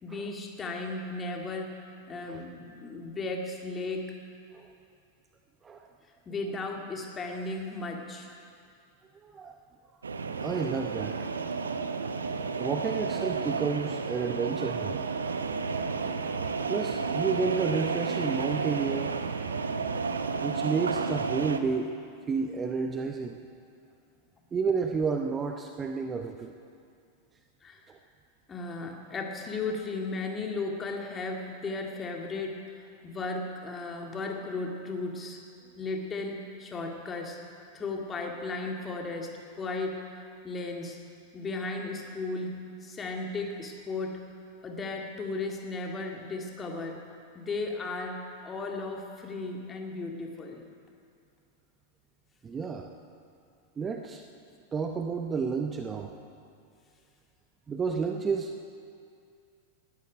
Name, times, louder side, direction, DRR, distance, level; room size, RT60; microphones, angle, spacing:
voice 1, 0.0-4.1 6.3-8.4 27.6-27.8 28.5-35.4 35.8-37.4 37.7-40.1 40.4-41.0 41.3-44.2 44.6-47.0 47.3-50.6, left 3 dB, 20° left, 2 dB, 2.2 m, -35 dB
voice 2, 9.2-9.5 10.4-11.2 12.6-15.0 16.7-19.2 20.4-21.9 22.3-23.4 24.5-26.5 27.9-28.0 52.4-52.9 53.8-54.2 54.7-56.2 57.7-58.7, right 5 dB, 20° right, 5 dB, 0.9 m, -31 dB
sound 1, 10.0-21.6, right 4 dB, 75° right, 0.8 m, -32 dB
19.5 x 13.5 x 5.1 m, 2.4 s
figure-of-eight pair, 90°, 0 cm